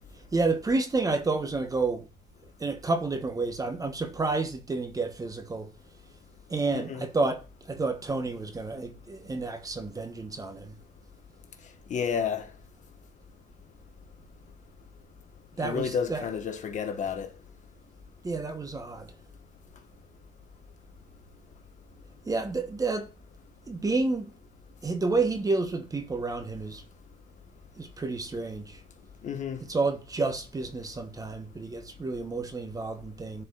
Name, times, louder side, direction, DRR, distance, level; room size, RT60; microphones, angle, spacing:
voice 1, 0.3-2.1 2.6-5.7 6.5-10.8 15.6-16.3 18.2-19.2 22.2-23.1 23.7-24.3 24.8-26.8 27.8-28.8 29.7-33.4, right 3 dB, 20° right, 1.1 m, -30 dB
voice 2, 6.7-7.0 11.9-12.4 15.6-17.3 29.2-29.6, left 7 dB, 45° left, 1.3 m, -30 dB
14.0 x 4.7 x 2.4 m
cardioid pair, 110°, 17 cm